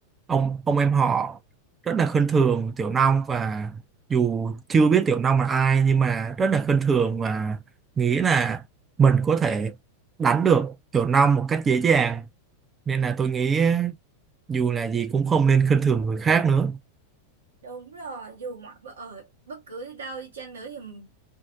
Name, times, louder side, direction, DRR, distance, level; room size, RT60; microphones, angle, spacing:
voice 1, 0.3-1.4 1.9-3.8 4.1-7.6 8.0-8.6 9.0-9.7 10.2-12.3 12.9-13.9 14.5-16.8, right 6 dB, 20° right, 0.4 m, -22 dB
voice 2, 17.6-21.1, right 4 dB, 65° right, 0.7 m, -39 dB
2.6 x 2.0 x 2.4 m
figure-of-eight pair, 90°, 0 cm